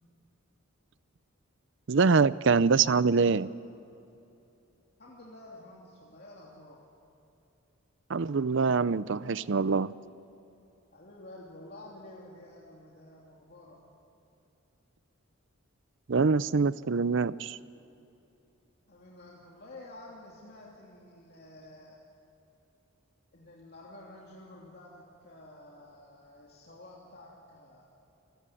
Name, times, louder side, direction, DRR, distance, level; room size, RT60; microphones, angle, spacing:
voice 1, 1.9-3.5 8.1-9.9 16.1-17.6, right 4 dB, 60° right, 18 dB, 0.5 m, -24 dB
voice 2, 5.0-6.8 10.9-13.8 18.9-22.0 23.3-27.9, left 1 dB, 45° left, -3 dB, 2.9 m, -50 dB
29.0 x 16.5 x 9.9 m, 2.8 s
head